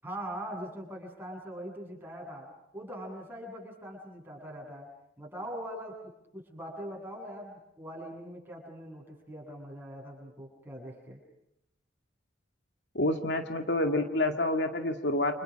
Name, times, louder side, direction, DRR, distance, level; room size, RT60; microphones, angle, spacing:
voice 1, 0.0-2.5 2.7-4.9 5.2-6.0 6.3-11.2, equal, 10° right, -1 dB, 7.7 m, -42 dB
voice 2, 12.9-15.4, left 1 dB, 60° left, 5 dB, 2.0 m, -28 dB
29.5 x 28.5 x 6.4 m, 0.82 s
head